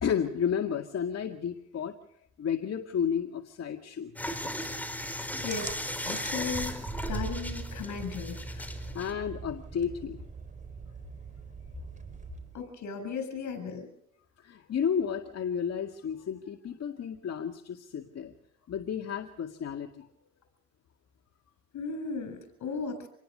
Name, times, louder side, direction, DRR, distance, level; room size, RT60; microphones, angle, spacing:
voice 1, 0.0-2.0 2.4-4.4 8.9-10.2 14.4-18.3 18.7-20.1, left 7 dB, 55° left, 4 dB, 2.1 m, -32 dB
sound 1, 4.2-9.1, left 1 dB, 5° left, 4.5 m, -37 dB
voice 2, 5.4-5.7 6.0-6.7 7.1-8.9 12.5-13.9 21.7-23.1, left 5 dB, 70° left, 9 dB, 7.6 m, -36 dB
sound 2, 5.5-12.7, right 4 dB, 25° right, 4.5 m, -41 dB
27.0 x 20.0 x 6.7 m, 0.72 s
cardioid pair, 90°, 30 cm